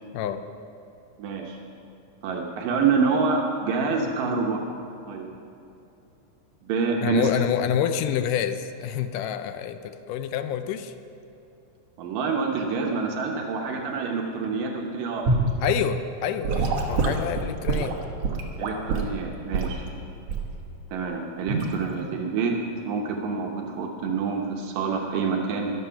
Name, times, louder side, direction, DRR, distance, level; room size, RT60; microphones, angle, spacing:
voice 1, 1.2-1.6 2.2-4.6 5.1-5.3 6.6-7.3 12.0-15.2 18.6-19.9 20.9-22.5 22.8-25.7, right 5 dB, 80° right, 0 dB, 2.6 m, -27 dB
voice 2, 7.0-10.9 15.6-18.0, left 9 dB, 80° left, 10 dB, 2.1 m, -27 dB
Gurgling / Sink (filling or washing) / Liquid, 15.3-15.5 16.4-19.1 19.5-19.8 20.3-20.6 21.5-21.7, right 3 dB, 55° right, 2.1 m, -25 dB
22.5 x 7.7 x 5.7 m, 2.8 s
omnidirectional pair, 3.9 m